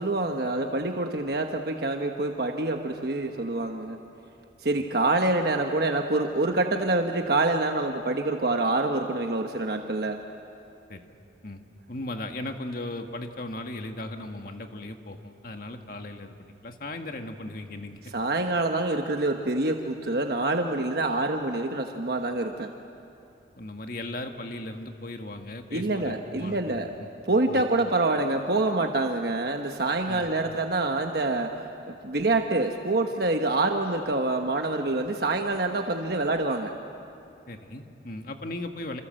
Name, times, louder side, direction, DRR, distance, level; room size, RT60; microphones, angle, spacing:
voice 1, 0.0-4.0 4.6-10.2 18.1-22.7 25.7-26.9 27.3-31.5 31.9-36.7, right 2 dB, 60° right, 4 dB, 1.3 m, -26 dB
voice 2, 11.9-18.1 23.6-27.1 27.5-27.6 30.1-30.3 37.5-39.0, left 1 dB, 50° left, 5 dB, 1.8 m, -37 dB
27.5 x 27.0 x 7.8 m, 2.9 s
head